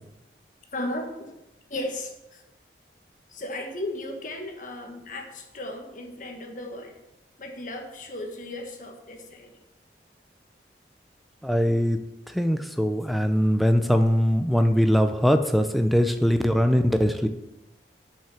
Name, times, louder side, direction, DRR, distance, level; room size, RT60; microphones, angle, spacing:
voice 1, 0.7-1.3 1.7-2.4 3.3-7.0 7.4-9.5, left 1 dB, 45° left, 3 dB, 1.6 m, -35 dB
voice 2, 11.4-12.0 12.3-17.3, equal, ahead, 7 dB, 0.6 m, -21 dB
9.0 x 5.7 x 7.0 m, 0.96 s
head